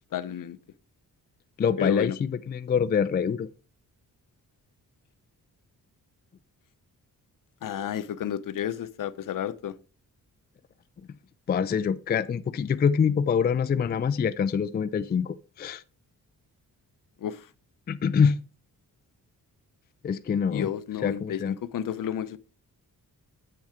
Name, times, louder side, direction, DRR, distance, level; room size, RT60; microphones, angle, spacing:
voice 1, 0.1-0.6 1.8-2.2 7.6-9.7 17.2-17.5 20.5-22.4, left 9 dB, 60° left, 0.7 m, -31 dB
voice 2, 1.6-3.5 11.5-15.8 17.9-18.4 20.0-20.7 21.0-21.6, left 6 dB, 30° left, 0.4 m, -25 dB
7.7 x 7.4 x 3.6 m
wide cardioid pair, 135°, 36 cm